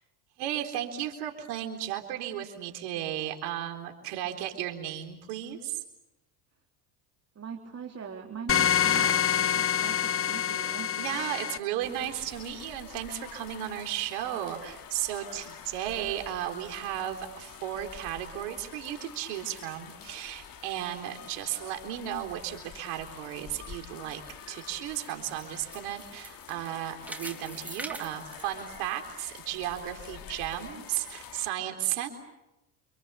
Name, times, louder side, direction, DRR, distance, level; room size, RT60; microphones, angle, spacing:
voice 1, 0.4-5.8 9.6-9.7 11.0-24.2 24.5-32.1, right 12 dB, 75° right, 5 dB, 4.1 m, -34 dB
voice 2, 7.4-10.9, right 6 dB, 30° right, 1 dB, 3.6 m, -41 dB
sound 1, 8.5-11.6, left 9 dB, 30° left, 1.0 m, -26 dB
sound 2, 11.8-31.5, left 8 dB, 45° left, 2.4 m, -47 dB
sound 3, 24.5-29.4 29.8-29.9 30.5-30.6, right 1 dB, 5° right, 3.4 m, -44 dB
29.0 x 27.5 x 7.0 m, 0.93 s
supercardioid pair, 85°, 46 cm